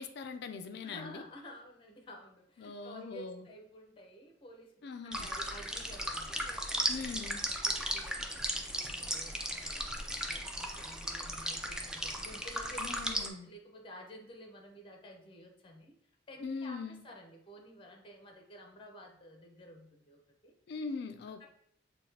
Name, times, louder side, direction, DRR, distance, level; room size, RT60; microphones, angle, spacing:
voice 1, 0.0-1.2 2.6-3.5 4.8-5.3 6.9-7.4 12.8-13.5 16.4-17.0 20.7-21.5, left 4 dB, 65° left, 8 dB, 0.4 m, -41 dB
voice 2, 0.8-4.7 5.0-7.1 7.5-9.9 10.2-15.9 16.3-20.5 21.4-21.5, equal, 30° left, 2 dB, 0.7 m, -52 dB
sound 1, 5.1-13.3, equal, 5° right, 0.4 m, -36 dB
5.8 x 2.3 x 2.7 m, 0.69 s
head